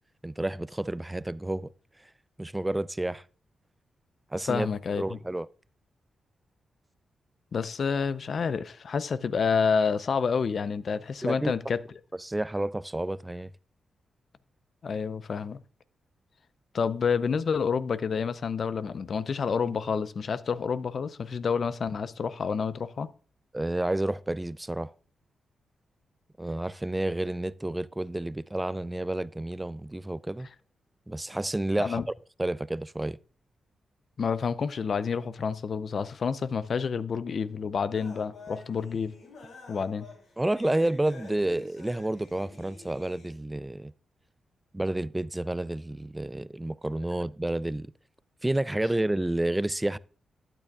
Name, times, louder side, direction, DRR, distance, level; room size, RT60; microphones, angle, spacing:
voice 1, 0.2-1.7 2.4-3.2 4.3-4.7 5.0-5.5 11.2-11.5 12.2-13.5 23.5-24.9 26.4-30.5 31.1-32.0 32.4-33.2 40.4-43.9 44.7-47.9 48.4-50.0, right 1 dB, 15° right, 0.4 m, -30 dB
voice 2, 4.4-5.2 7.5-11.8 14.8-15.6 16.7-23.1 31.8-32.1 34.2-39.1 39.7-40.1, left 6 dB, 60° left, 0.5 m, -29 dB
sound 1, 37.9-43.3, left 2 dB, 80° left, 3.1 m, -48 dB
12.0 x 9.0 x 2.3 m
supercardioid pair, 50°, 0 cm